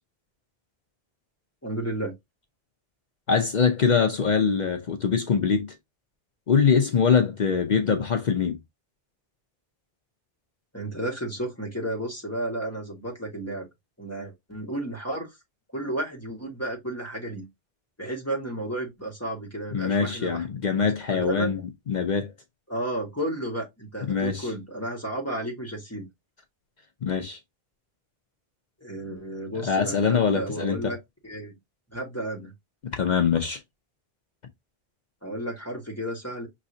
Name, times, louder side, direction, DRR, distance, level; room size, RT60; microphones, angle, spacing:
voice 1, 1.6-2.1 10.7-13.7 14.0-15.3 15.7-17.5 18.0-20.4 21.1-21.5 22.7-26.1 28.8-31.0 31.2-31.5 31.9-32.5 35.2-36.5, right 1 dB, 15° left, 1.5 m, -32 dB
voice 2, 3.3-5.8 6.5-8.6 19.7-22.3 24.1-24.5 27.0-27.4 29.6-31.0 32.8-33.6, left 6 dB, 50° left, 0.7 m, -23 dB
5.1 x 3.2 x 2.7 m
omnidirectional pair, 1.0 m